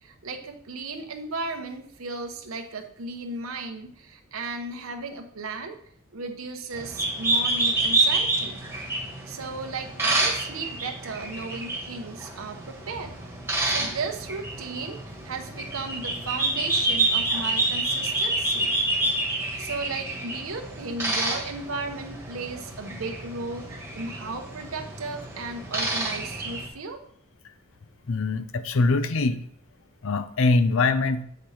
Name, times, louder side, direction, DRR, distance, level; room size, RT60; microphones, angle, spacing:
voice 1, 0.0-5.8 6.1-8.6 9.3-13.1 13.6-18.8 19.6-27.0, right 3 dB, 70° right, 4 dB, 0.9 m, -35 dB
sound 1, 6.7-26.7, right 2 dB, 10° right, 1.4 m, -28 dB
voice 2, 28.1-29.4 30.0-31.2, left 3 dB, 65° left, 12 dB, 0.6 m, -23 dB
7.7 x 5.2 x 4.3 m, 0.65 s
head